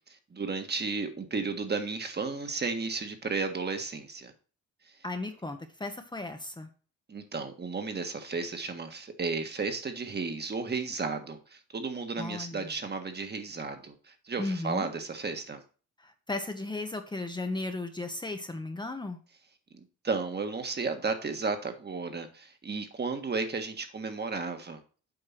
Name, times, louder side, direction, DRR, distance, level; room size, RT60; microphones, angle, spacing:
voice 1, 0.3-4.3 7.1-13.9 14.3-15.6 20.0-24.8, right 4 dB, 35° right, 6 dB, 1.6 m, -33 dB
voice 2, 5.0-6.7 12.2-12.7 14.4-14.9 16.0-19.2, left 2 dB, 15° left, 6 dB, 1.0 m, -35 dB
7.9 x 4.6 x 5.9 m, 0.37 s
cardioid pair, 90°, 30 cm